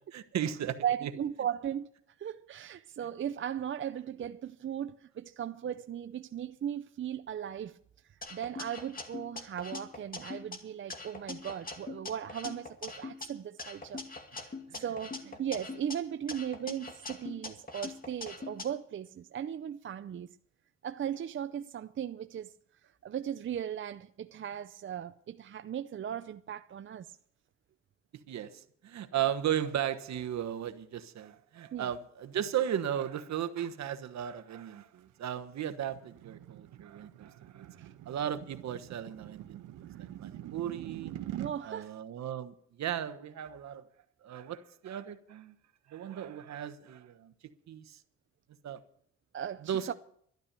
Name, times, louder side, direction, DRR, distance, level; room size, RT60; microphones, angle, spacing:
voice 1, 0.1-1.1 14.7-14.8 28.1-37.7 38.1-41.1 41.6-43.9 44.2-45.5 45.9-47.3 47.7-48.0 48.6-48.8 49.6-49.9, right 10 dB, 65° right, 1.2 m, -36 dB
voice 2, 0.8-1.9 2.2-7.8 8.1-14.0 14.4-20.4 20.8-22.5 22.8-27.2 31.7-31.9 37.8-37.9 41.4-42.0 49.3-49.9, right 9 dB, 40° right, 0.6 m, -37 dB
sound 1, 8.2-10.6 10.9-13.3 13.6-16.0 16.3-18.7, left 3 dB, 30° left, 2.3 m, -42 dB
sound 2, 35.1-41.5, right 12 dB, 85° right, 1.1 m, -45 dB
12.0 x 12.0 x 6.8 m
cardioid pair, 90°, 30 cm